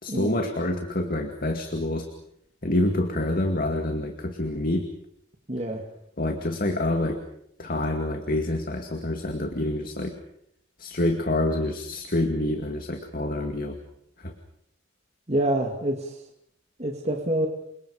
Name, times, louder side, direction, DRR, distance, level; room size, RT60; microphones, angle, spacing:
voice 1, 0.0-2.1 2.6-4.9 6.2-7.2 7.6-10.2 10.8-13.8 14.2-14.3, left 1 dB, 45° left, 5 dB, 2.2 m, -27 dB
voice 2, 5.5-5.8 15.3-16.2 16.8-17.5, right 1 dB, 35° right, 2 dB, 2.5 m, -26 dB
30.0 x 26.0 x 5.1 m, 0.73 s
head